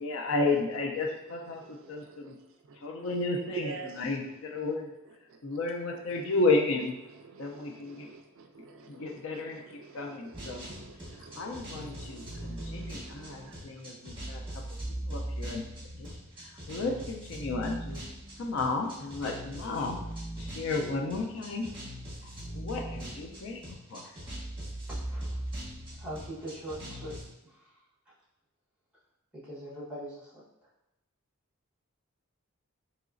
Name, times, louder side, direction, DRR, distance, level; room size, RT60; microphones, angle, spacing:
voice 1, 0.0-2.3 2.8-4.9 5.4-6.9 7.4-8.1 8.9-9.6 9.9-10.7 11.4-14.6 14.9-15.6 15.9-16.1 16.4-18.0 18.4-20.0 20.4-21.7 22.2-24.1, left 3 dB, 60° left, 2 dB, 0.4 m, -33 dB
voice 2, 1.5-2.3 2.6-3.2 3.5-4.1 5.3-5.6 6.1-6.3 7.0-13.8, right 4 dB, 60° right, 4 dB, 0.3 m, -48 dB
sound 1, 10.3-27.3, right 1 dB, 20° right, 1.3 m, -40 dB
voice 3, 24.9-25.4 26.0-27.2 27.4-28.1 29.3-30.7, right 1 dB, 5° right, -8 dB, 1.1 m, -42 dB
3.9 x 2.9 x 2.5 m, 0.90 s
head